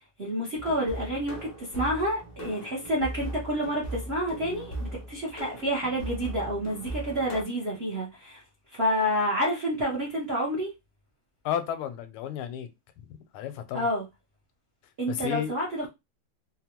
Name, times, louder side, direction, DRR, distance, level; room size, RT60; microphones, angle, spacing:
voice 1, 0.2-8.4 8.7-10.7 13.7-14.0 15.0-15.9, equal, 55° right, 0.7 m, -29 dB
sound 1, 0.6-7.4, right 1 dB, 70° left, 0.5 m, -38 dB
voice 2, 11.4-12.7 13.3-13.9 15.1-15.5, left 9 dB, 85° left, 1.5 m, -32 dB
3.8 x 2.2 x 2.8 m
omnidirectional pair, 2.4 m